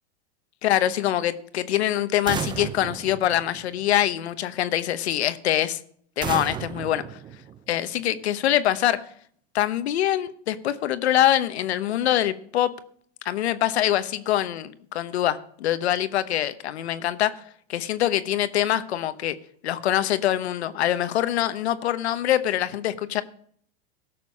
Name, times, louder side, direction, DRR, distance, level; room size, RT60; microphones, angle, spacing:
voice 1, 0.6-5.8 6.2-7.0 7.7-9.0 9.5-12.7 13.2-17.4 17.7-19.4 19.6-23.2, left 12 dB, 90° left, 1.0 m, -24 dB
sound 1, 2.3-4.1 6.2-8.0, right 8 dB, 15° right, 0.4 m, -34 dB
16.5 x 6.8 x 5.4 m
supercardioid pair, 130°, 32 cm